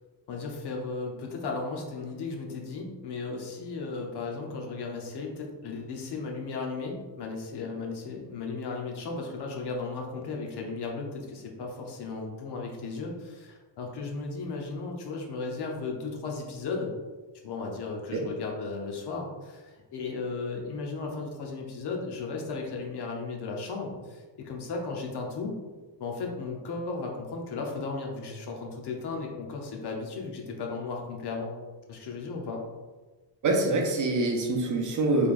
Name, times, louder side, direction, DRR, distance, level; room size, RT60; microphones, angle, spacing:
voice 1, 0.3-16.9 17.4-25.5 26.0-31.5 31.9-32.6, left 4 dB, 65° left, 1 dB, 0.8 m, -35 dB
voice 2, 33.4-35.3, right 2 dB, 45° right, 2 dB, 0.6 m, -25 dB
3.8 x 3.3 x 2.4 m, 1.3 s
cardioid pair, 145°, 44 cm